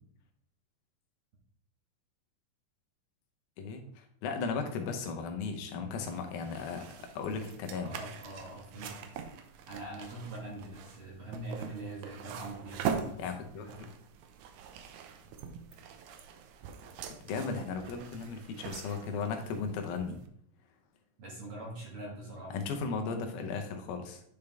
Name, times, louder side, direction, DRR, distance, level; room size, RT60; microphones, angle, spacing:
voice 1, 3.6-6.8 7.2-7.9 13.2-13.9 17.2-20.2 22.5-24.2, left 5 dB, 85° left, 5 dB, 2.7 m, -36 dB
sound 1, 6.0-20.3, right 7 dB, 75° right, 1.9 m, -43 dB
voice 2, 7.7-9.1 9.7-13.3 13.6-13.8 21.2-22.5, right 2 dB, 50° right, -3 dB, 2.0 m, -43 dB
9.3 x 5.1 x 3.5 m, 0.66 s
omnidirectional pair, 4.1 m